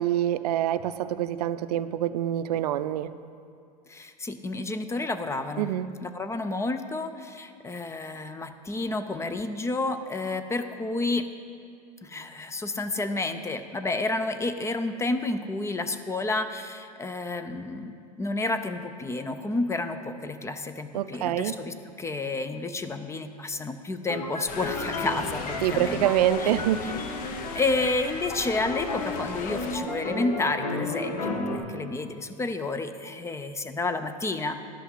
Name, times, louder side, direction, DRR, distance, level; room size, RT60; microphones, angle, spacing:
voice 1, 0.0-3.1 5.6-5.9 20.9-21.5 25.6-26.9, right 12 dB, 80° right, 13 dB, 0.4 m, -26 dB
voice 2, 3.9-5.7 6.0-11.2 12.0-26.1 26.4-26.5 27.2-34.6, left 2 dB, 15° left, 9 dB, 0.5 m, -30 dB
sound 1, 24.1-31.6, left 2 dB, 90° left, 1.4 m, -33 dB
sound 2, 24.5-29.8, left 6 dB, 45° left, 0.8 m, -39 dB
11.0 x 5.6 x 6.1 m, 2.4 s
hypercardioid pair, 100°, 20 cm